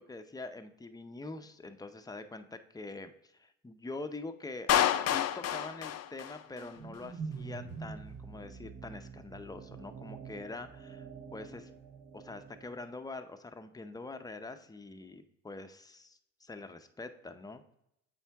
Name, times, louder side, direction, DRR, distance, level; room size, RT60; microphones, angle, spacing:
voice 1, 0.0-11.7 12.1-17.6, left 3 dB, 10° left, 8 dB, 0.6 m, -45 dB
Clapping, 4.7-6.7, left 11 dB, 60° left, 0.5 m, -29 dB
sound 1, 6.5-12.8, right 5 dB, 50° right, 0.9 m, -46 dB
7.4 x 4.5 x 3.4 m, 0.80 s
cardioid pair, 90°, 30 cm